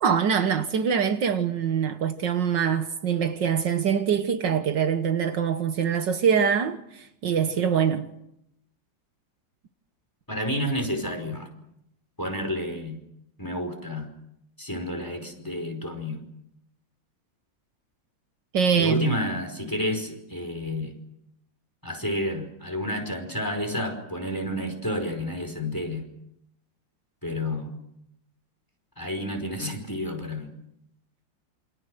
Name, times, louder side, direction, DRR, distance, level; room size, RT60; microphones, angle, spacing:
voice 1, 0.0-8.1 18.5-19.1, right 7 dB, 70° right, 1.8 m, -24 dB
voice 2, 10.3-11.5 12.2-13.0 13.4-14.1 14.6-16.2 18.7-20.9 21.8-26.1 27.2-27.7 29.0-30.5, left 1 dB, 10° left, 5.0 m, -30 dB
28.0 x 25.0 x 6.5 m
omnidirectional pair, 2.1 m